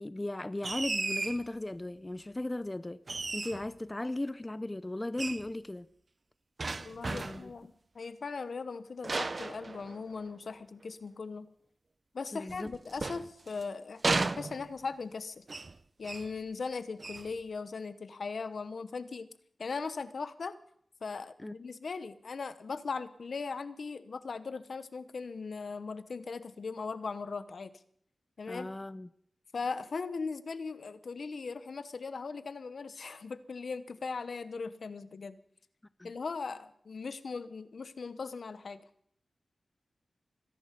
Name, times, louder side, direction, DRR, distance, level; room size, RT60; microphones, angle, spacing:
voice 1, 0.0-3.0 3.3-5.9 7.1-7.5 12.3-12.7 21.4-21.5 28.5-29.1 36.0-36.1, left 1 dB, 25° left, 0.6 m, -37 dB
sound 1, 0.6-1.4 3.1-3.7 5.2-5.5 6.6-7.5 9.0-10.3 12.5-13.6 14.0-14.9 15.5-15.8 16.0-16.3 17.0-17.3, right 3 dB, 50° right, 0.6 m, -34 dB
voice 2, 6.8-11.5 12.1-15.4 16.0-19.3 19.6-20.6 21.0-27.7 28.4-28.7 29.5-35.4 36.0-38.8, left 4 dB, 70° left, 0.9 m, -39 dB
24.5 x 11.0 x 5.3 m
cardioid pair, 60°, 0 cm